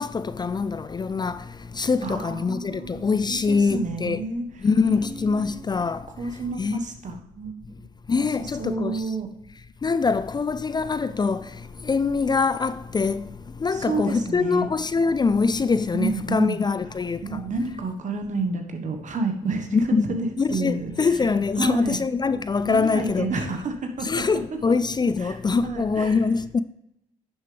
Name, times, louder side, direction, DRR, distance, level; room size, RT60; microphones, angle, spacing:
voice 1, 0.0-1.4 1.7-4.2 4.6-6.0 6.6-6.8 8.1-9.0 9.8-11.5 11.8-13.3 13.6-17.4 19.7-20.1 20.4-23.4 24.0-26.6, left 4 dB, 30° left, 0.4 m, -24 dB
voice 2, 2.0-4.4 4.8-5.6 6.2-7.9 8.2-8.3 8.6-9.3 13.7-14.7 15.9-16.6 17.2-21.1 21.6-22.0 22.6-24.2 25.2-25.4 25.6-26.2, right 3 dB, 55° right, 1.4 m, -30 dB
10.5 x 6.6 x 3.4 m
supercardioid pair, 55°, 15 cm